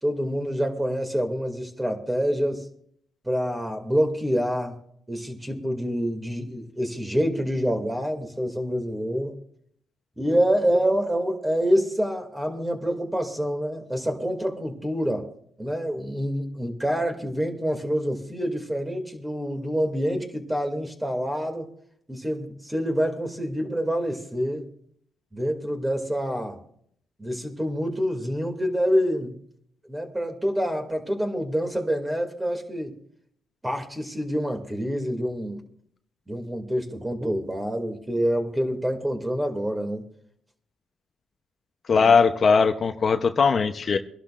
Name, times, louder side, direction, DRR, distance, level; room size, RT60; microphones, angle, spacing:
voice 1, 0.0-2.7 3.2-4.8 5.1-9.3 10.2-15.3 15.6-21.7 22.1-24.7 25.3-26.6 27.2-29.4 29.9-33.0 33.6-35.6 36.3-40.0 41.9-42.1, equal, 10° right, 4 dB, 2.4 m, -27 dB
voice 2, 41.9-44.0, left 5 dB, 45° left, 7 dB, 0.8 m, -19 dB
24.5 x 11.5 x 2.5 m, 0.65 s
cardioid pair, 90°, 0 cm